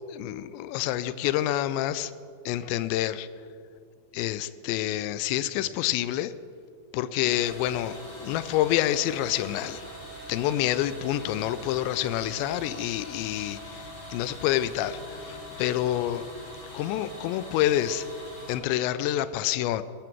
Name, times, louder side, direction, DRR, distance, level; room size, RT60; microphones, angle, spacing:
voice 1, 0.2-2.1 2.5-3.3 4.1-6.3 6.9-9.8 10.3-16.3 16.7-18.1 18.5-19.8, left 13 dB, 85° left, 14 dB, 2.7 m, -28 dB
sound 1, 7.2-18.6, equal, 25° left, 3.1 m, -43 dB
15.0 x 14.0 x 4.6 m, 2.3 s
omnidirectional pair, 5.3 m